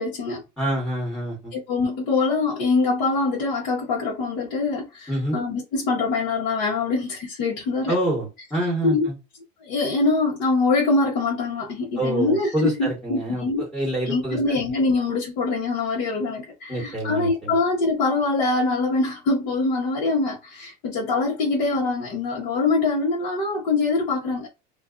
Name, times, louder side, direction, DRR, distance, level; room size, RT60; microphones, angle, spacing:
voice 1, 0.0-0.4 1.5-7.9 8.8-9.1 9.6-13.6 14.0-24.5, left 3 dB, 60° left, 1.0 m, -24 dB
voice 2, 0.6-1.5 5.1-5.4 7.9-9.1 12.0-14.4 16.7-17.6, right 1 dB, 5° left, 1.2 m, -26 dB
2.5 x 2.3 x 2.4 m
supercardioid pair, 120°, 21 cm